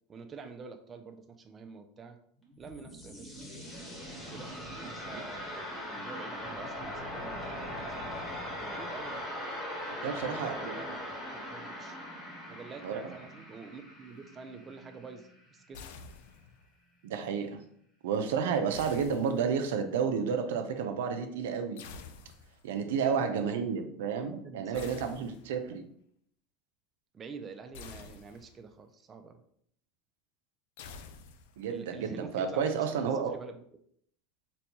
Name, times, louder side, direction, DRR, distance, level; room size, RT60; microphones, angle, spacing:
voice 1, 0.1-2.2 2.6-3.7 4.3-8.1 8.6-9.3 10.0-11.0 11.5-12.0 12.4-15.8 23.1-23.5 23.8-24.0 24.3-25.3 27.1-29.4 31.7-32.7 33.0-33.6, right 4 dB, 25° right, 6 dB, 0.3 m, -47 dB
sound 1, 2.4-15.3, left 1 dB, 20° left, 1.1 m, -40 dB
voice 2, 10.0-10.7 12.8-13.1 17.0-17.6 18.0-21.8 22.6-25.8 31.6-33.4, right 6 dB, 85° right, 6 dB, 0.4 m, -31 dB
sound 2, 15.7-16.7 18.7-19.8 21.8-22.7 24.7-25.7 27.7-28.7 30.8-31.8, left 5 dB, 80° left, 0.3 m, -49 dB
4.0 x 2.2 x 2.8 m, 0.65 s
supercardioid pair, 135°, 0 cm